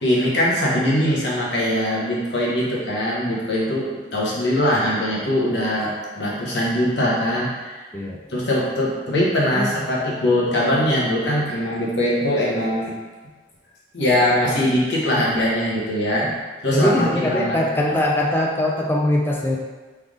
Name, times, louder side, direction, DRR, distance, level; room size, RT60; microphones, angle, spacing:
voice 1, 0.0-7.8 8.3-12.9 13.9-16.3 16.6-17.9, left 1 dB, 85° left, -5 dB, 1.1 m, -21 dB
voice 2, 16.7-19.6, left 1 dB, 15° left, -2 dB, 0.3 m, -22 dB
3.5 x 3.3 x 3.7 m, 1.3 s
head